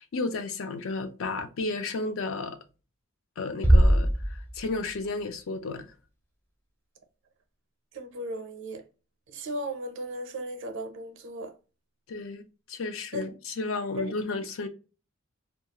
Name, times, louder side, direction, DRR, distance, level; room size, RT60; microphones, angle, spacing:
voice 1, 0.0-2.6 3.4-5.9 12.1-12.4 12.7-14.7, left 3 dB, 65° left, 0.5 m, -33 dB
Bass drum, 3.6-5.1, right 1 dB, 10° left, 0.5 m, -21 dB
voice 2, 7.9-8.8 9.3-11.5 13.1-13.3 14.0-14.1, right 1 dB, 60° right, 0.5 m, -36 dB
2.3 x 2.3 x 2.8 m
head